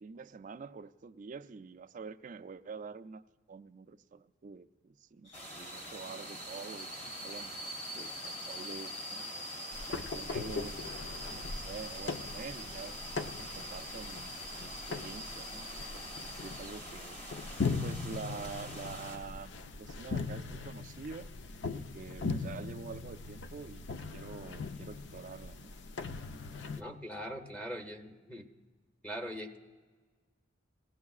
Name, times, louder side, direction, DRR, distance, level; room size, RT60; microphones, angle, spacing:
voice 1, 0.0-3.2 3.5-7.5 7.9-12.9 13.4-15.7 15.9-17.2 17.7-21.3 21.7-25.7, right 5 dB, 45° right, 9 dB, 0.4 m, -47 dB
sound 1, 5.3-16.8 18.3-18.5, equal, 90° left, 2.0 m, -45 dB
sound 2, 5.3-19.2, equal, 35° left, 2.2 m, -47 dB
sound 3, 9.7-26.8, left 4 dB, 65° left, 0.5 m, -40 dB
voice 2, 26.7-28.5 29.0-29.6, equal, 10° left, 0 dB, 0.8 m, -41 dB
19.0 x 15.5 x 2.4 m, 1.4 s
head